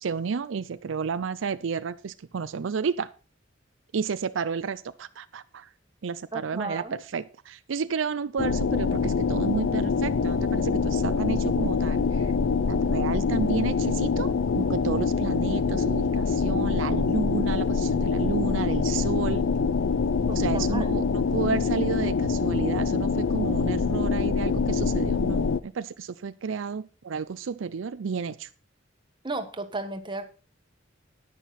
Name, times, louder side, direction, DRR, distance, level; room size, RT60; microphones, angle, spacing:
voice 1, 0.0-3.1 3.9-5.7 6.0-12.3 12.7-19.5 20.3-28.5, right 5 dB, 80° right, 0.5 m, -31 dB
voice 2, 6.3-6.9 20.3-21.0 29.2-30.3, right 2 dB, 25° right, 1.4 m, -34 dB
sound 1, 8.4-25.6, left 5 dB, 80° left, 0.5 m, -25 dB
10.0 x 10.0 x 4.1 m
head